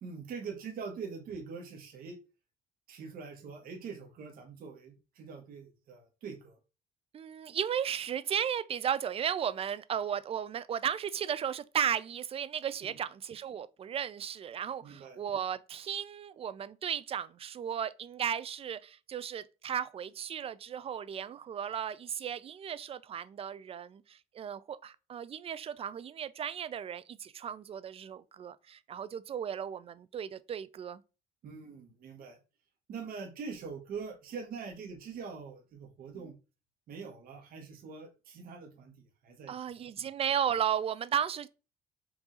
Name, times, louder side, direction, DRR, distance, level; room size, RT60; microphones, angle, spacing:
voice 1, 0.0-2.2 2.9-6.6 12.8-12.9 14.8-15.2 31.4-32.4 32.9-36.4 36.9-40.1, right 5 dB, 60° right, 1.3 m, -44 dB
voice 2, 7.1-31.0 39.5-41.5, right 8 dB, 35° right, 0.4 m, -35 dB
4.8 x 2.7 x 3.8 m
cardioid pair, 110°, 17 cm